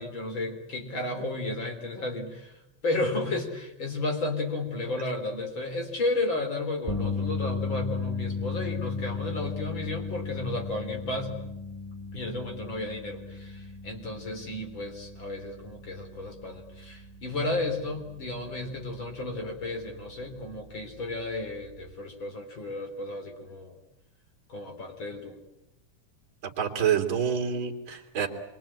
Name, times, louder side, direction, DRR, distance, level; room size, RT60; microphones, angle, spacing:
voice 1, 0.0-11.4 12.1-23.7 24.5-25.4, left 2 dB, 40° left, 4 dB, 4.4 m, -33 dB
sound 1, 6.9-19.1 19.5-19.7 21.9-22.0, left 4 dB, 20° right, 3.8 m, -36 dB
voice 2, 26.6-28.3, right 8 dB, 40° right, 0 dB, 3.8 m, -27 dB
26.0 x 24.0 x 9.0 m, 0.89 s
omnidirectional pair, 3.4 m